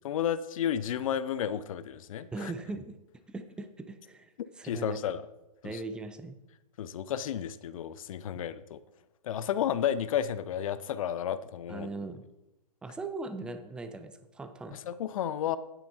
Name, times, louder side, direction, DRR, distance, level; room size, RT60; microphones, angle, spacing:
voice 1, 0.0-2.5 4.6-5.3 5.6-5.8 6.8-8.8 9.2-11.9 14.7-15.6, left 9 dB, 55° left, 15 dB, 0.7 m, -32 dB
voice 2, 2.3-3.0 3.3-5.0 5.6-6.4 11.7-12.2 12.8-14.8, right 3 dB, 5° right, 9 dB, 0.4 m, -39 dB
9.2 x 8.9 x 4.4 m, 0.96 s
hypercardioid pair, 140°, 21 cm